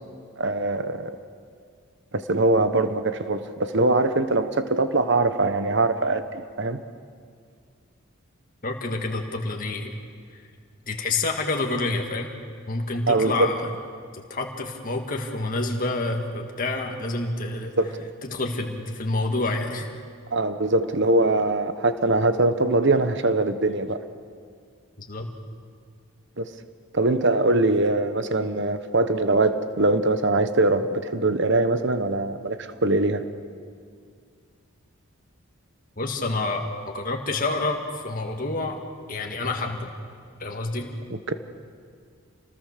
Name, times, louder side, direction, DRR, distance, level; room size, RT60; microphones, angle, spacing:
voice 1, 0.4-1.1 2.1-6.8 13.1-13.5 17.8-18.0 20.3-24.0 26.4-26.5 26.9-33.2 41.1-41.3, right 2 dB, 55° right, 10 dB, 1.1 m, -22 dB
voice 2, 8.6-10.0 10.3-10.4 10.9-12.3 12.7-13.7 14.1-17.7 18.3-19.9 25.0-25.3 36.0-38.8 39.1-39.9 40.4-40.9, left 2 dB, 40° left, 2 dB, 1.8 m, -28 dB
27.0 x 20.0 x 6.6 m, 2.1 s
head